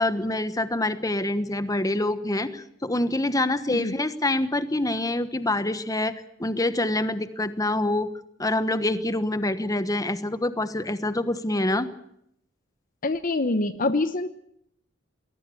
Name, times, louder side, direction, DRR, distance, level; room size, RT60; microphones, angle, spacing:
voice 1, 0.0-6.1 6.4-8.1 8.4-11.9, left 1 dB, 20° left, 12 dB, 1.2 m, -26 dB
voice 2, 13.0-14.3, left 2 dB, 45° left, 12 dB, 0.9 m, -25 dB
21.5 x 18.5 x 8.4 m, 0.73 s
head